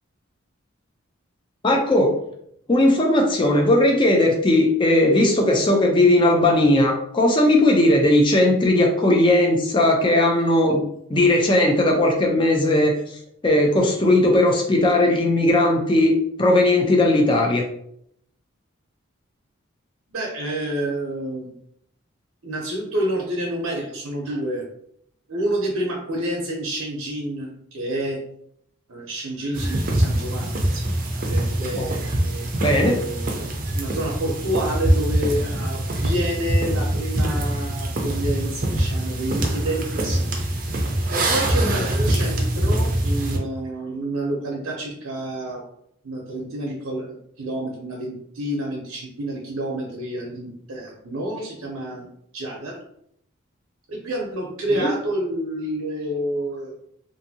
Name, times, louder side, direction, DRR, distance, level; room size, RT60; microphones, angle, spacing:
voice 1, 1.6-2.2 2.7-10.8 11.1-12.9 13.4-17.7 31.7-31.9 32.6-33.0 41.6-41.7 54.7-54.9, left 1 dB, 25° left, 1 dB, 0.4 m, -18 dB
voice 2, 20.1-21.5 22.4-24.6 25.3-28.2 28.9-40.4 41.1-45.6 46.0-52.1 52.3-52.8 53.9-56.7, right 1 dB, 85° right, -2 dB, 0.7 m, -29 dB
sound 1, 29.5-43.4, right 1 dB, 40° right, 0.5 m, -24 dB
2.6 x 2.6 x 2.7 m, 0.71 s
head